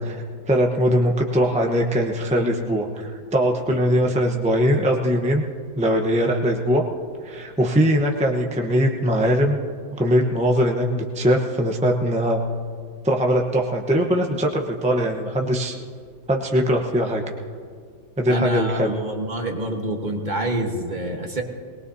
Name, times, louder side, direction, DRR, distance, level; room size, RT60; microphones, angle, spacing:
voice 1, 0.0-5.4 5.8-6.8 7.2-9.6 10.0-12.4 13.0-15.8 16.3-17.2 18.2-19.0, equal, 10° right, 1 dB, 0.5 m, -21 dB
voice 2, 3.7-4.1 18.3-21.4, right 1 dB, 25° right, 2 dB, 1.3 m, -27 dB
21.5 x 20.0 x 2.8 m, 2.1 s
omnidirectional pair, 2.0 m